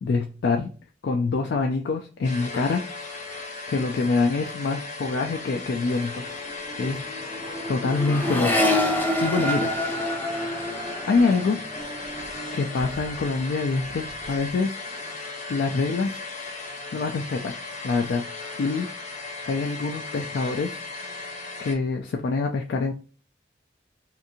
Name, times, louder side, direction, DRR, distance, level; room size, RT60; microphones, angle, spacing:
voice 1, 0.0-0.7 1.0-2.8 3.7-6.1 6.8-8.7 9.2-9.7 11.1-11.6 12.5-14.7 15.5-16.2 16.9-17.5 17.8-18.2 18.6-18.9 19.5-20.8 21.6-22.9, left 4 dB, 70° left, 3 dB, 0.3 m, -25 dB
sound 1, 2.2-21.7, left 3 dB, 45° left, 0.7 m, -37 dB
Accelerating revving vroom, 5.4-5.7 5.9-13.4 13.8-14.4, left 1 dB, 10° left, 0.5 m, -28 dB
2.6 x 2.5 x 2.6 m, 0.39 s
head